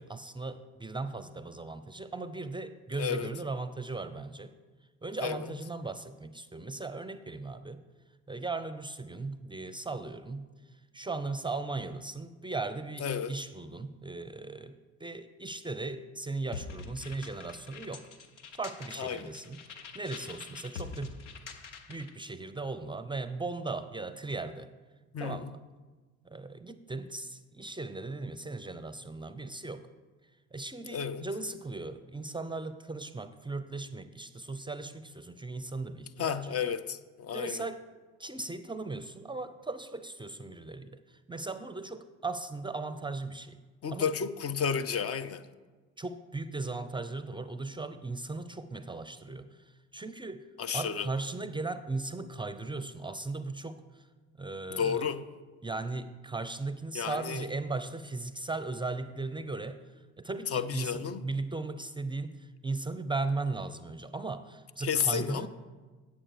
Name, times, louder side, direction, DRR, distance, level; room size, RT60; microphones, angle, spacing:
voice 1, 0.0-4.5 5.0-7.8 8.3-18.1 18.5-19.6 19.9-21.2 21.9-24.7 25.2-25.5 26.2-29.9 30.5-36.6 37.3-37.8 38.2-43.6 43.9-44.1 46.0-50.5 50.7-54.1 54.3-55.1 55.6-65.5, right 3 dB, 15° right, 0.6 m, -37 dB
voice 2, 3.0-3.3 5.2-5.5 13.0-13.4 19.0-19.3 25.1-25.5 30.9-31.3 36.2-37.7 43.8-45.5 50.6-51.1 54.7-55.2 56.9-57.5 60.5-61.2 64.8-65.5, left 7 dB, 40° left, 0.7 m, -32 dB
sound 1, 16.5-22.2, left 5 dB, 90° left, 0.9 m, -45 dB
8.8 x 7.3 x 6.7 m
hypercardioid pair, 60°, 35 cm